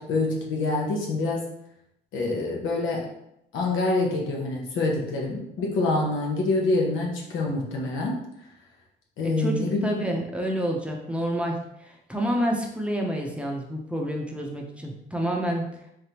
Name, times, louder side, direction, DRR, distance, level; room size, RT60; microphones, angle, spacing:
voice 1, 0.0-1.5 2.1-3.1 3.5-8.2 9.2-9.9, left 2 dB, 80° left, -1 dB, 1.0 m, -26 dB
voice 2, 9.2-15.6, equal, 5° right, 0 dB, 0.7 m, -28 dB
3.8 x 3.4 x 2.9 m, 0.78 s
cardioid pair, 90°, 20 cm